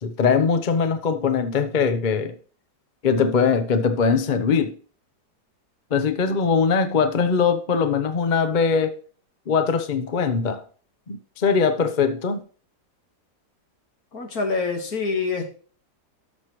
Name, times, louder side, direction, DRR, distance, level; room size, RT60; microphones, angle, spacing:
voice 1, 0.0-2.4 3.0-4.8 5.9-9.0 9.5-10.6 11.1-12.4, left 5 dB, 45° left, 0.6 m, -21 dB
voice 2, 14.1-15.5, left 4 dB, 65° left, 2.0 m, -26 dB
12.5 x 6.4 x 3.1 m
omnidirectional pair, 1.8 m